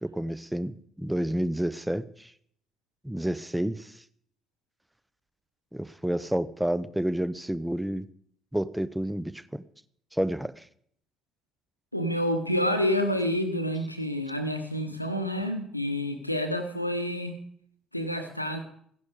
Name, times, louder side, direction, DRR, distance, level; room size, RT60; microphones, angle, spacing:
voice 1, 0.0-2.3 3.0-3.9 5.7-8.1 8.5-9.6 10.1-10.6, right 1 dB, 5° right, 16 dB, 0.7 m, -30 dB
voice 2, 11.9-17.4 17.9-18.6, equal, 90° left, 8 dB, 1.0 m, -28 dB
16.0 x 11.0 x 5.1 m, 0.66 s
figure-of-eight pair, 50°, 0 cm